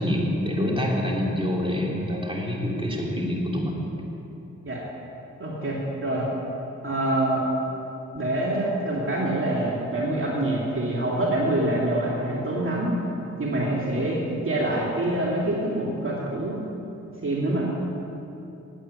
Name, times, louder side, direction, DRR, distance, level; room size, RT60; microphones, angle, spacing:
voice 1, 0.0-3.8, left 1 dB, 15° right, -3 dB, 3.2 m, -26 dB
voice 2, 5.4-6.2 6.8-7.4 8.1-12.9 13.4-16.6 17.2-17.6, right 1 dB, 40° right, -4 dB, 2.5 m, -25 dB
9.2 x 9.0 x 9.6 m, 2.9 s
cardioid pair, 50°, 30 cm